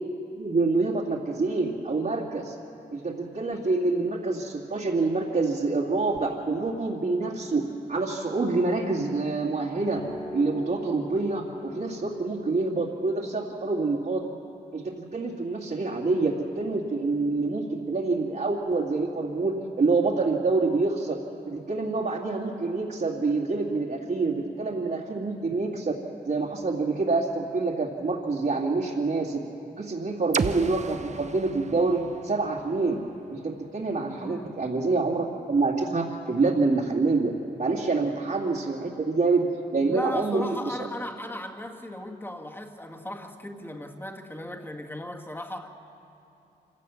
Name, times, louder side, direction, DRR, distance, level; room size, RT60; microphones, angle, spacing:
voice 1, 0.4-2.6 2.9-7.6 7.9-10.0 10.3-14.3 14.7-21.2 21.5-26.0 26.2-29.4 29.8-33.0 33.3-37.3 37.6-39.5 39.7-40.9, right 3 dB, 60° right, -7 dB, 2.3 m, -26 dB
sound 1, 9.9-17.1, left 1 dB, 30° left, 2.5 m, -43 dB
sound 2, 30.3-34.2, right 5 dB, 40° right, 0.6 m, -35 dB
voice 2, 34.2-34.6 39.8-45.7, left 1 dB, 10° left, 2 dB, 1.8 m, -36 dB
25.5 x 17.0 x 7.1 m, 2.8 s
cardioid pair, 75°, 18 cm